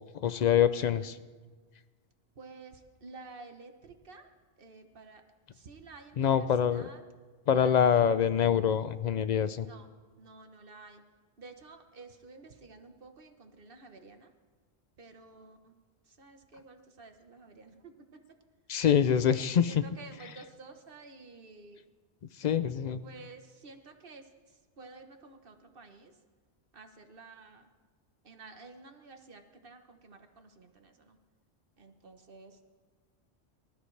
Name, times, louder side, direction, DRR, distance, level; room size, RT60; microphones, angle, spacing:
voice 1, 0.2-1.1 6.2-6.9 7.5-9.7 18.7-19.8 20.2-20.3 22.4-23.0, left 8 dB, 60° left, 13 dB, 0.4 m, -25 dB
voice 2, 2.4-4.3 4.6-5.2 5.5-7.0 7.5-8.2 9.6-9.9 10.2-11.0 11.4-14.3 15.0-15.7 16.2-17.9 19.3-19.4 19.7-21.8 23.0-24.2 24.8-26.1 26.7-27.6 28.2-31.2 31.8-32.5, right 3 dB, 55° right, 6 dB, 1.3 m, -51 dB
24.0 x 13.0 x 3.3 m, 1.4 s
omnidirectional pair, 1.2 m